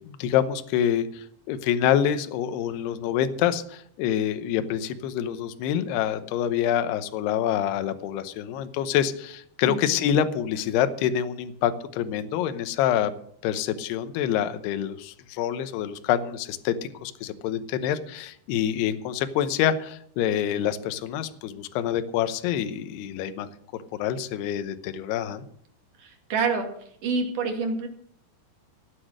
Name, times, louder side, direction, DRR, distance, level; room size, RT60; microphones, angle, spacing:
voice 1, 0.0-13.1 13.4-16.7 17.0-23.5 23.9-25.5, left 10 dB, 75° left, 10 dB, 2.7 m, -26 dB
voice 2, 9.6-10.0 26.0-26.7 27.0-27.9, right 4 dB, 50° right, 3 dB, 3.2 m, -27 dB
16.0 x 8.5 x 6.4 m, 0.64 s
omnidirectional pair, 5.4 m